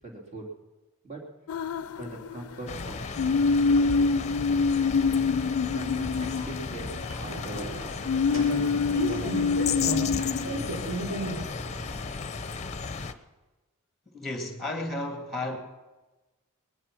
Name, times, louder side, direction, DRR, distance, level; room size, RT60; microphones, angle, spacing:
voice 1, 0.0-0.5 1.0-1.2 1.9-4.0 4.8-5.3 5.7-6.9 7.2-7.7 8.3-8.7 9.0-9.5 9.8-11.4, right 2 dB, 30° right, -1 dB, 3.3 m, -41 dB
sound 1, 1.5-2.5 3.2-7.1 8.0-10.4, left 4 dB, 80° left, 0.4 m, -25 dB
sound 2, 2.7-13.1, left 5 dB, 30° left, 0.7 m, -35 dB
sound 3, 5.8-11.9, equal, 70° right, 6.7 m, -36 dB
voice 2, 14.1-15.6, left 2 dB, ahead, 3 dB, 2.1 m, -33 dB
20.0 x 11.0 x 6.1 m, 1.1 s
head